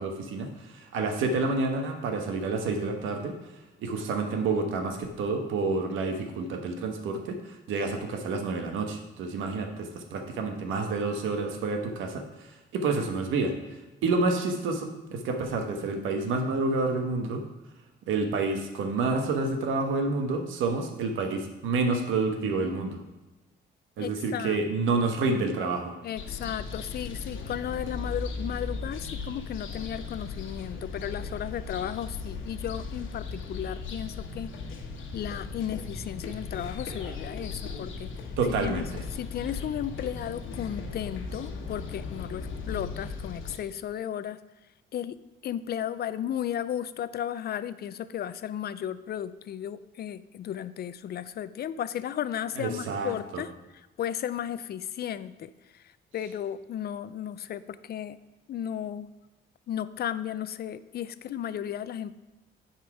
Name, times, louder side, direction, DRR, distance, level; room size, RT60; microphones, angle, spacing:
voice 1, 0.0-3.4 3.8-13.5 14.0-17.4 18.1-23.0 24.0-25.9 38.4-39.0 52.6-53.4, right 3 dB, 85° right, 5 dB, 1.1 m, -29 dB
voice 2, 24.0-24.6 24.9-25.0 25.3-25.5 26.0-34.9 35.1-38.1 38.5-44.4 44.9-45.2 45.4-53.5 54.0-58.2 58.5-59.1 59.7-62.2, left 10 dB, 55° left, 15 dB, 0.4 m, -34 dB
sound 1, 26.2-43.6, left 4 dB, 80° left, 1.3 m, -37 dB
9.2 x 4.4 x 4.8 m, 1.1 s
cardioid pair, 90°, 20 cm